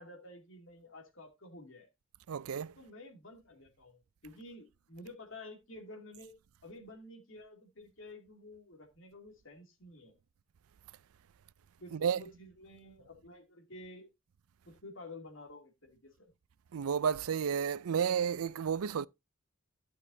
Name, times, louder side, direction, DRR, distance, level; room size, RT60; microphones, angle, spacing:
voice 1, 0.0-1.9 2.8-6.3 6.6-10.1 11.8-14.1 14.7-16.3, left 2 dB, 65° left, 2.6 m, -51 dB
voice 2, 2.3-2.7 11.9-12.2 16.7-19.1, right 7 dB, 90° right, 0.4 m, -31 dB
15.0 x 6.4 x 2.7 m
head